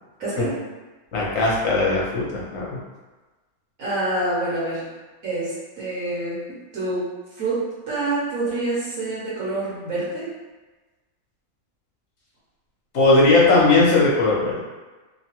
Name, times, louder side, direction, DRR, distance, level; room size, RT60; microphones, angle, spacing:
voice 1, 0.2-0.6 3.8-4.9 5.2-7.1 7.4-10.3, right 2 dB, 70° right, -8 dB, 1.2 m, -27 dB
voice 2, 1.1-2.8 12.9-14.6, left 3 dB, 55° left, -5 dB, 0.9 m, -18 dB
2.9 x 2.2 x 2.8 m, 1.2 s
omnidirectional pair, 1.6 m